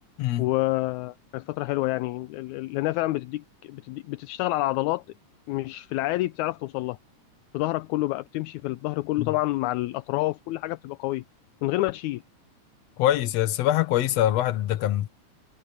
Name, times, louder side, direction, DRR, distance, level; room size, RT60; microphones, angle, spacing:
voice 1, 0.4-5.0 5.5-7.0 7.5-11.2 11.6-12.2, left 18 dB, 80° left, 1.9 m, -28 dB
voice 2, 13.0-15.1, left 13 dB, 65° left, 2.1 m, -24 dB
omnidirectional pair, 3.5 m